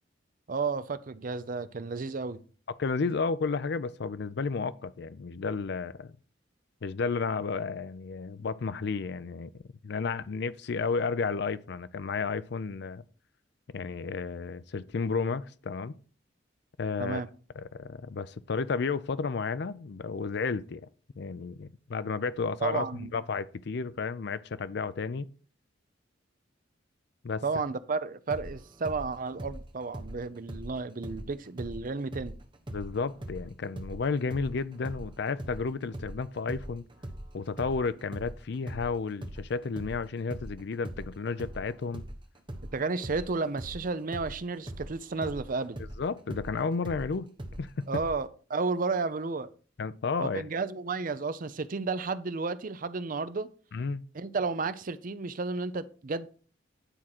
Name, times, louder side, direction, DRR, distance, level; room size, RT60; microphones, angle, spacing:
voice 1, 0.5-2.4 17.0-17.3 22.6-23.1 27.4-32.4 42.7-45.8 47.9-49.5 50.2-53.5 54.1-56.3, right 4 dB, 45° right, 0.5 m, -32 dB
voice 2, 2.8-6.2 6.8-9.5 9.8-13.0 13.7-15.9 16.8-17.2 17.6-20.8 21.2-22.9 23.1-25.3 27.2-27.4 32.7-36.8 37.3-42.0 45.8-47.3 47.6-47.7 49.8-50.5 53.7-54.0, left 4 dB, 60° left, 0.5 m, -32 dB
sound 1, 28.3-31.8 32.1-40.0 40.3-48.1, right 1 dB, 25° right, 1.1 m, -41 dB
10.0 x 3.7 x 5.9 m
head